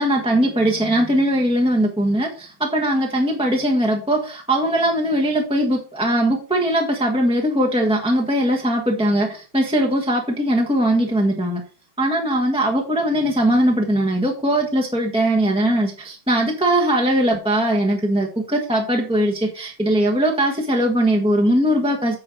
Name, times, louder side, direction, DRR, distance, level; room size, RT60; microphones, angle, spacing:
voice 1, 0.0-11.6 12.0-22.2, right 1 dB, 5° right, -1 dB, 1.1 m, -20 dB
8.6 x 5.4 x 4.6 m, 0.37 s
omnidirectional pair, 2.1 m